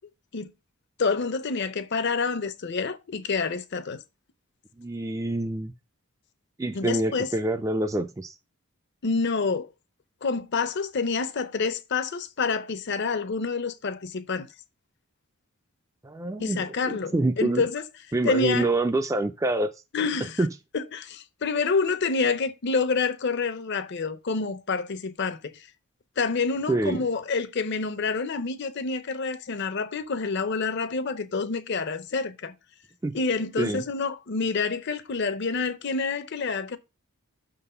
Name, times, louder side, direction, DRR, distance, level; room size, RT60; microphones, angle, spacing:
voice 1, 1.0-4.0 6.7-7.3 9.0-9.7 10.2-14.5 16.4-17.8 18.2-18.7 19.9-20.5 20.7-25.7 26.2-32.5 33.1-36.8, left 4 dB, 50° left, 0.6 m, -28 dB
voice 2, 4.8-5.7 6.6-8.4 16.0-17.6 18.1-19.7 20.4-20.5 26.7-27.0 33.0-33.2 33.6-33.8, right 2 dB, 15° right, 0.3 m, -26 dB
6.2 x 3.9 x 5.4 m
head